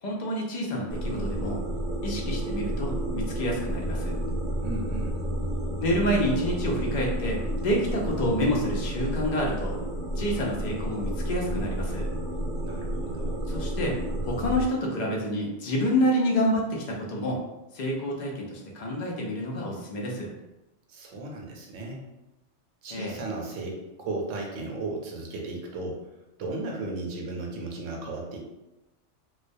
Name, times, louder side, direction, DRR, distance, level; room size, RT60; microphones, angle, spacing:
voice 1, 0.0-1.6 2.0-4.2 5.8-9.8 10.2-12.1 13.5-14.0 14.2-17.4 17.7-20.3 22.9-23.2, equal, 55° left, -2 dB, 0.5 m, -28 dB
sound 1, 0.9-14.7, right 1 dB, 60° right, 0.4 m, -31 dB
voice 2, 4.6-5.1 12.6-13.4 20.9-22.1 22.8-26.1 26.4-28.4, right 2 dB, 80° right, 0 dB, 0.9 m, -35 dB
2.2 x 2.1 x 2.5 m, 0.97 s
omnidirectional pair, 1.3 m